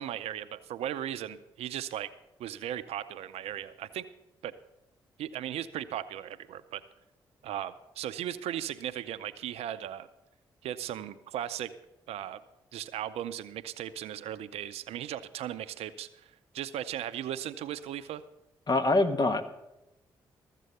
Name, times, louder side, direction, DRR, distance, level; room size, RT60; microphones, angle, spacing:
voice 1, 0.0-2.1 2.4-4.1 4.4-4.5 5.2-6.8 7.4-10.1 10.6-11.7 12.1-12.4 12.7-18.2, right 11 dB, 75° right, 13 dB, 0.5 m, -37 dB
voice 2, 18.7-19.6, left 2 dB, 40° left, 8 dB, 1.2 m, -25 dB
14.0 x 7.5 x 6.7 m, 0.93 s
hypercardioid pair, 40°, 11 cm